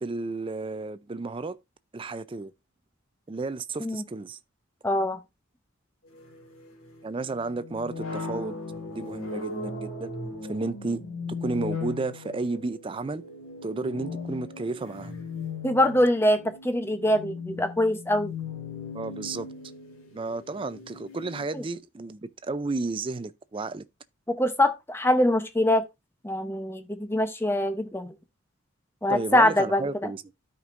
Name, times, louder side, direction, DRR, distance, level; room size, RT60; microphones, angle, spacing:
voice 1, 0.0-1.6 1.9-2.5 3.3-4.4 7.0-8.6 8.9-10.1 10.5-11.0 11.4-13.3 13.6-15.1 18.9-19.5 20.1-23.8 29.1-30.2, right 3 dB, 25° right, 0.4 m, -32 dB
voice 2, 4.8-5.2 15.6-18.3 21.5-21.6 24.3-25.8 26.2-28.1 29.0-29.8, left 1 dB, 10° left, 0.7 m, -23 dB
sound 1, 6.1-21.4, left 4 dB, 85° left, 2.2 m, -38 dB
12.5 x 5.2 x 2.5 m
head